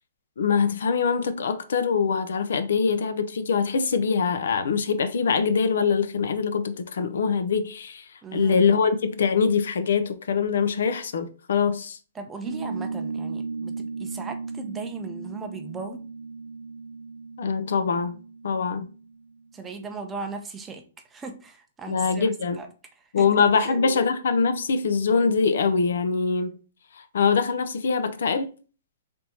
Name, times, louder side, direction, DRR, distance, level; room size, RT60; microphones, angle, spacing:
voice 1, 0.4-8.1 8.3-12.0 17.4-18.2 18.4-18.9 21.9-22.6 23.1-26.6 27.1-28.5, left 5 dB, 75° left, 0.6 m, -23 dB
voice 2, 8.2-8.6 12.1-16.0 19.5-20.8 21.1-22.7 23.2-23.3 23.5-23.8, right 4 dB, 10° right, 0.5 m, -37 dB
sound 1, 12.5-19.4, right 4 dB, 60° right, 0.7 m, -36 dB
3.5 x 2.7 x 4.3 m
hypercardioid pair, 165°, 0 cm